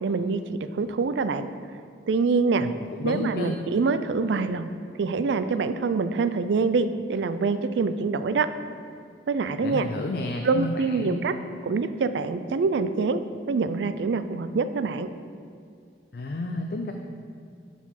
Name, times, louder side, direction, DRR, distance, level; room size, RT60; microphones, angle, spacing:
voice 1, 0.0-1.5 2.1-2.7 3.0-4.7 5.0-8.5 9.3-9.9 10.4-11.3 11.6-13.2 13.5-15.1, right 4 dB, 80° right, 11 dB, 0.4 m, -25 dB
voice 2, 2.6-3.6 9.6-11.2 16.1-16.9, left 2 dB, 60° left, 3 dB, 0.4 m, -31 dB
7.1 x 4.2 x 5.7 m, 2.4 s
head